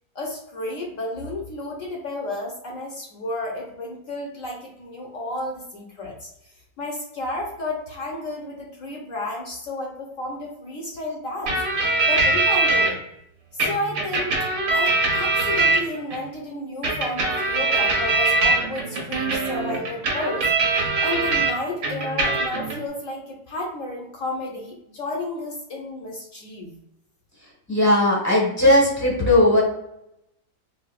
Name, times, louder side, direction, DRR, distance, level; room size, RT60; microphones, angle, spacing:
voice 1, 0.1-6.3 6.8-11.6 12.0-13.0 13.5-20.5 21.0-26.7, left 2 dB, 65° left, -1 dB, 0.8 m, -32 dB
sound 1, 11.5-12.9 13.6-16.2 16.8-21.5 21.8-22.7, right 3 dB, 70° right, 1.6 m, -22 dB
voice 2, 27.7-29.6, left 1 dB, 15° left, -3 dB, 0.5 m, -17 dB
4.8 x 2.1 x 2.4 m, 0.80 s
omnidirectional pair, 2.1 m